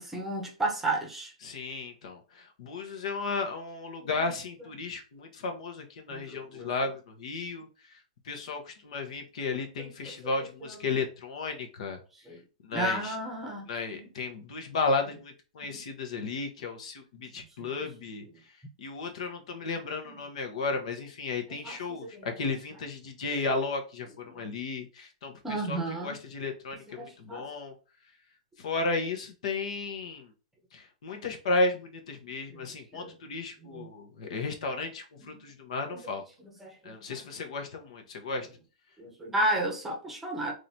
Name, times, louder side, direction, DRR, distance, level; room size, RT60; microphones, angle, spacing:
voice 1, 0.0-1.3 4.0-4.3 6.1-6.7 9.8-10.1 10.6-11.0 12.1-12.4 12.7-14.1 15.6-15.8 17.6-17.9 18.2-18.3 21.5-22.3 24.3-24.5 25.4-26.2 27.0-27.5 32.5-32.6 32.9-33.1 33.6-33.9 35.2-35.3 35.9-36.0 36.4-37.2 39.0-40.5, right 1 dB, 5° right, 0.8 m, -34 dB
voice 2, 1.4-7.7 8.2-12.0 12.6-13.1 13.7-18.2 18.8-27.7 28.6-30.3 30.7-36.2 36.8-38.5, left 3 dB, 70° left, 1.1 m, -34 dB
3.8 x 3.2 x 2.7 m
hypercardioid pair, 155°, 4 cm